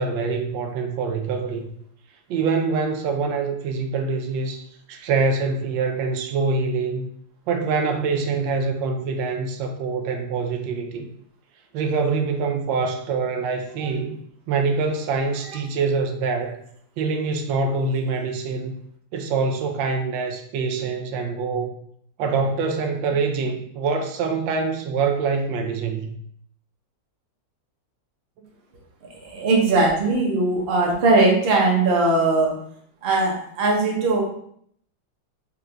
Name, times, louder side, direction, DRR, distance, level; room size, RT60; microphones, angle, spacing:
voice 1, 0.0-1.7 2.3-7.1 7.5-11.1 11.7-14.2 14.5-16.6 17.0-18.8 19.1-21.7 22.2-26.1, right 4 dB, 85° right, 4 dB, 1.3 m, -25 dB
voice 2, 29.2-32.5 33.0-34.2, right 2 dB, 45° right, -2 dB, 0.8 m, -19 dB
4.3 x 2.5 x 3.3 m, 0.66 s
omnidirectional pair, 2.0 m